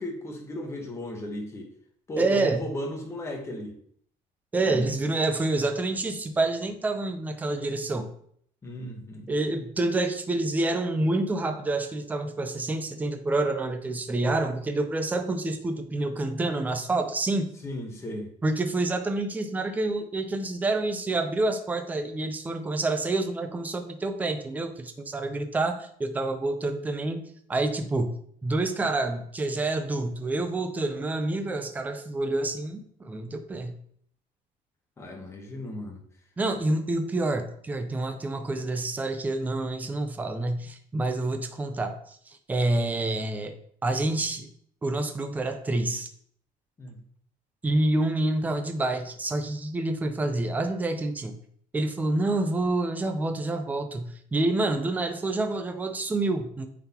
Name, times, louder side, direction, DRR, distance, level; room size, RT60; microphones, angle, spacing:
voice 1, 0.0-1.7 2.1-3.7 4.7-4.9 8.6-9.3 17.6-18.3 35.0-36.0 46.8-47.0, left 1 dB, 15° left, 2 dB, 1.1 m, -35 dB
voice 2, 2.2-2.6 4.5-8.1 9.3-17.5 18.4-28.1 28.4-33.7 36.4-43.5 43.8-44.5 44.8-46.1 47.6-51.4 51.7-56.7, right 2 dB, 10° right, 7 dB, 0.5 m, -28 dB
8.8 x 4.0 x 2.9 m, 0.62 s
cardioid pair, 170°, 16 cm